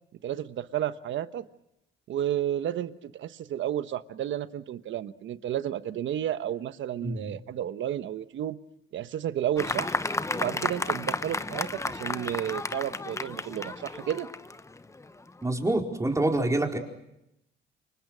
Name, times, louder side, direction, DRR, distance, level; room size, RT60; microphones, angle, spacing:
voice 1, 0.2-1.4 2.1-8.6 8.9-9.9 10.3-14.3, right 11 dB, 70° right, 12 dB, 1.2 m, -32 dB
Fireworks, 9.6-15.3, left 2 dB, 15° left, 0.9 m, -32 dB
voice 2, 15.4-16.8, right 2 dB, 15° right, 2 dB, 4.5 m, -26 dB
29.0 x 24.5 x 6.3 m, 0.82 s
cardioid pair, 90°, 20 cm